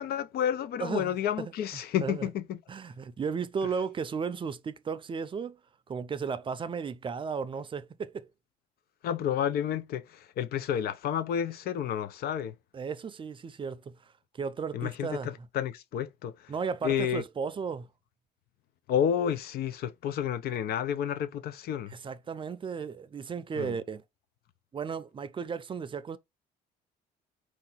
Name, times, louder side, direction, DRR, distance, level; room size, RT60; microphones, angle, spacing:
voice 1, 0.0-2.6 9.0-12.5 14.7-16.5 16.8-17.2 18.9-21.9 23.5-23.8, left 9 dB, 65° left, 0.7 m, -30 dB
voice 2, 0.8-1.5 2.0-2.3 2.7-5.6 5.9-8.3 12.7-15.3 16.5-17.9 21.9-24.0 24.7-26.2, right 6 dB, 30° right, 0.5 m, -35 dB
4.7 x 2.8 x 4.0 m
cardioid pair, 110°, 17 cm